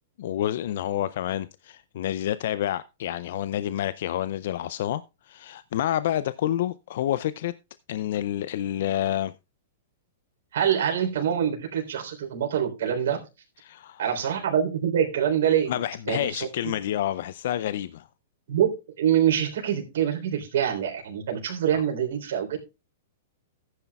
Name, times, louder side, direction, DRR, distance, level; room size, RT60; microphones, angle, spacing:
voice 1, 0.2-7.5 7.9-9.3 13.6-14.0 15.7-18.1 21.7-21.8, left 12 dB, 65° left, 0.4 m, -28 dB
voice 2, 10.5-13.2 14.0-16.5 18.5-18.7 19.0-22.7, right 9 dB, 70° right, 3.6 m, -25 dB
14.0 x 9.9 x 2.3 m
hypercardioid pair, 135°, 0 cm